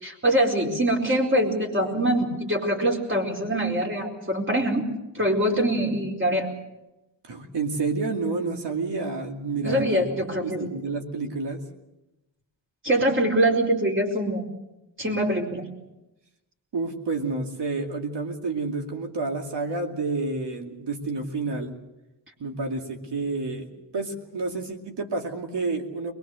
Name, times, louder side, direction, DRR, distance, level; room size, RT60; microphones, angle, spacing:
voice 1, 0.0-4.9 5.1-6.5 9.6-10.7 12.8-14.4 15.0-15.6, right 1 dB, 25° right, 0 dB, 4.3 m, -24 dB
voice 2, 7.3-10.0 10.4-11.6 16.7-21.8 22.4-23.7 23.9-26.1, right 3 dB, 65° right, 3 dB, 2.5 m, -29 dB
22.5 x 21.5 x 6.4 m, 0.96 s
wide cardioid pair, 100°, 44 cm